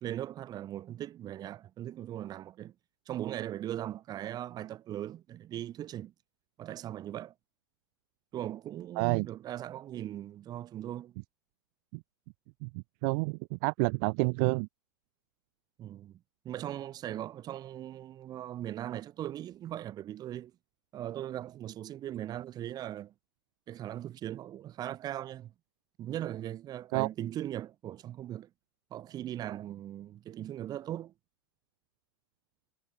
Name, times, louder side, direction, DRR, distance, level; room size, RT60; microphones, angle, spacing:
voice 1, 0.0-2.7 3.1-6.1 6.6-7.3 8.3-11.2 15.8-16.2 16.4-20.5 20.9-23.1 23.7-25.5 26.0-28.5 28.9-31.1, right 12 dB, 30° right, 1.2 m, -39 dB
voice 2, 12.6-14.7 26.9-27.1, right 37 dB, 50° right, 0.7 m, -29 dB
hypercardioid pair, 95°, 12 cm